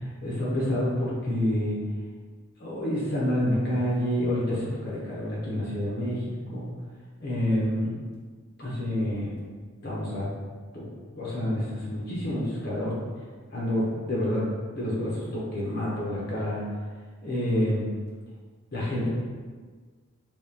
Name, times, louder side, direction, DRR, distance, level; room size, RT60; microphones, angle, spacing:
voice 1, 0.2-1.8 2.6-6.7 7.2-7.9 8.6-9.4 9.8-10.3 10.7-10.9 11.2-13.0 13.5-14.4 14.7-16.6 17.2-17.8 18.7-19.1, left 1 dB, 45° left, -6 dB, 0.8 m, -28 dB
3.5 x 2.9 x 2.9 m, 1.5 s
head